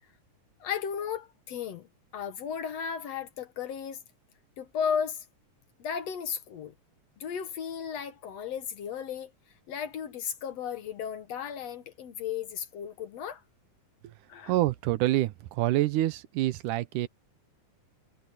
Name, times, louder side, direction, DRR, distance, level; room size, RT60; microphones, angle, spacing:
voice 1, 0.6-4.0 4.6-5.3 5.8-6.7 7.2-9.3 9.7-13.4 14.3-14.6, left 7 dB, 60° left, 2.1 m, -35 dB
voice 2, 14.5-17.1, right 15 dB, 80° right, 2.2 m, -27 dB
omnidirectional pair, 3.7 m